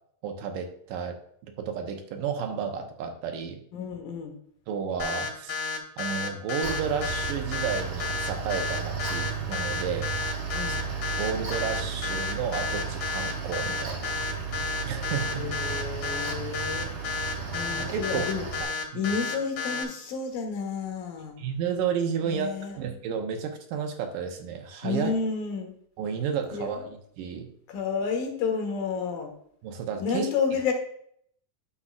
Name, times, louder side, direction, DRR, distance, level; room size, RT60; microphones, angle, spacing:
voice 1, 0.2-1.2 1.6-3.6 4.7-5.7 6.0-10.1 10.7-10.8 11.2-14.2 14.9-15.4 17.7-18.2 18.6-19.1 21.4-25.1 26.0-26.8 27.2-27.5 29.6-30.3, right 7 dB, 75° right, 5 dB, 2.5 m, -32 dB
voice 2, 3.7-4.3 10.5-10.8 15.3-17.0 17.5-18.5 18.9-21.4 22.2-22.8 24.8-25.7 26.5-26.9 27.7-29.3 30.0-30.7, left 5 dB, 75° left, 3 dB, 3.1 m, -30 dB
sound 1, 5.0-19.8, left 4 dB, 60° left, 3.4 m, -31 dB
Mechanical fan, 6.6-18.6, right 6 dB, 50° right, 1.0 m, -34 dB
9.9 x 7.3 x 2.4 m, 0.65 s
omnidirectional pair, 4.2 m